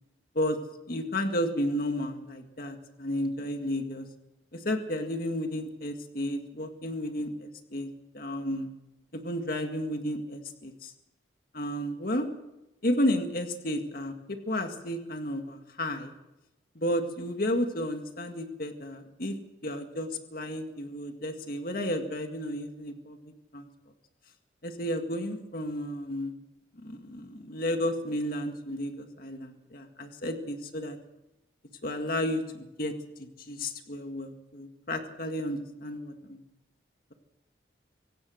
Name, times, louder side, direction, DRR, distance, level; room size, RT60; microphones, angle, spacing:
voice 1, 0.9-4.1 4.5-7.9 8.1-8.7 9.1-10.9 11.5-12.3 12.8-16.1 16.8-19.3 19.6-23.7 24.6-26.3 26.8-31.0 31.8-32.9 33.2-36.4, left 1 dB, 50° left, 5 dB, 1.9 m, -32 dB
24.5 x 17.5 x 6.4 m, 0.94 s
head